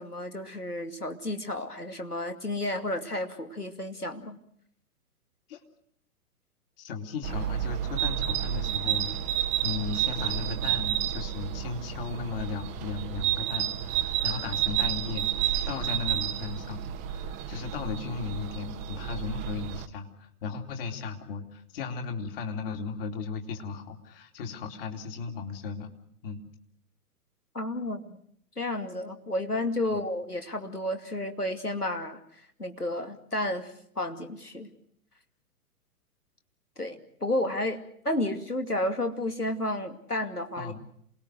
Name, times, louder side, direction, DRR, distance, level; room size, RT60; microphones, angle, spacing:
voice 1, 0.0-4.4 27.5-28.2 28.6-32.2 32.6-34.7 36.8-40.7, left 1 dB, 90° left, 6 dB, 2.7 m, -32 dB
voice 2, 6.8-16.8 17.1-25.9 26.2-26.4 29.9-30.0 40.6-40.8, left 5 dB, 40° left, 4 dB, 3.0 m, -36 dB
sound 1, 7.2-19.9, right 11 dB, 15° right, 0.9 m, -30 dB
28.0 x 20.5 x 6.5 m, 0.68 s
figure-of-eight pair, 120°, 45 cm